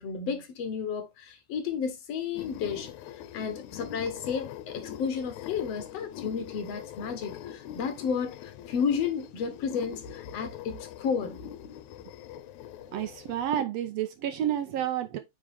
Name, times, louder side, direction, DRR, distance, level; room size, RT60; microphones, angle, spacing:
voice 1, 0.0-11.4, left 6 dB, 65° left, 2.0 m, -32 dB
sound 1, 2.3-13.6, left 11 dB, 80° left, 2.0 m, -43 dB
voice 2, 12.9-15.2, right 10 dB, 70° right, 1.6 m, -30 dB
9.1 x 4.7 x 3.4 m
omnidirectional pair, 3.4 m